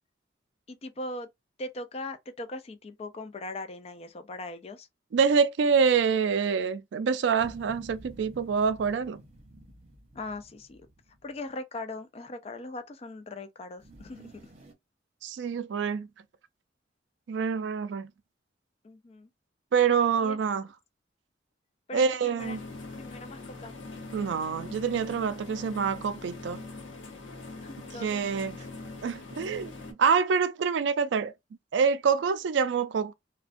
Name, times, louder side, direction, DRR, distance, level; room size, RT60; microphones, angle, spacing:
voice 1, 0.7-1.3 1.6-4.9 10.1-10.9 11.2-14.5 18.8-19.3 20.2-20.4 21.9-22.6 22.9-23.7 27.6-28.7, left 2 dB, 35° left, 0.3 m, -40 dB
voice 2, 5.1-9.2 15.2-16.1 17.3-18.1 19.7-20.6 21.9-22.6 24.1-26.6 28.0-28.6 29.0-29.7 30.0-31.3 31.7-33.1, right 6 dB, 75° right, 0.3 m, -26 dB
sound 1, 7.4-11.4 13.8-14.7, right 1 dB, 35° right, 0.7 m, -51 dB
sound 2, 22.4-29.9, left 3 dB, 80° left, 0.7 m, -43 dB
2.4 x 2.1 x 2.5 m
head